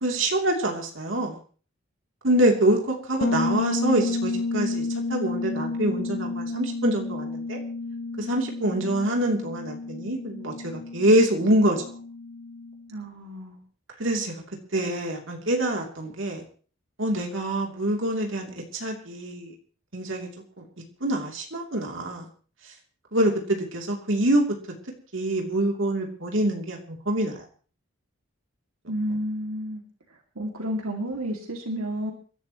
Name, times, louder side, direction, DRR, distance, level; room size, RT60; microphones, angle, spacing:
voice 1, 0.0-1.4 2.2-7.6 8.2-11.8 14.0-14.4 14.7-16.4 17.0-19.5 19.9-20.3 21.0-22.3 23.1-24.5 25.1-27.4, right 1 dB, 60° right, 1 dB, 3.1 m, -25 dB
Bass guitar, 3.2-12.9, left 3 dB, 85° left, 0.8 m, -31 dB
voice 2, 12.9-13.6 28.9-29.8 30.4-32.1, equal, 85° right, 2 dB, 2.5 m, -31 dB
28.5 x 11.5 x 3.1 m, 0.42 s
head